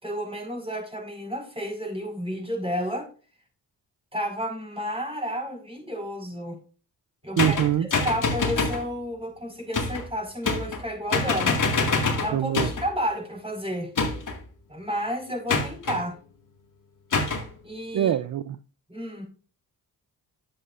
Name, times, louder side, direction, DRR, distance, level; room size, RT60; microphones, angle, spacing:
voice 1, 0.0-3.1 4.1-6.6 7.2-11.6 12.2-13.9 14.7-16.1 17.6-18.1 18.9-19.3, equal, 15° right, 1 dB, 4.8 m, -31 dB
sound 1, 7.4-8.9 9.7-10.1 10.4-10.9 11.1-12.9 14.0-14.4 15.5-16.0 17.1-17.5, left 3 dB, 50° left, 2.1 m, -25 dB
voice 2, 7.4-7.9 12.3-12.7 17.9-18.6, right 10 dB, 50° right, 13 dB, 0.6 m, -24 dB
11.5 x 7.6 x 2.5 m, 0.37 s
cardioid pair, 65°, 40 cm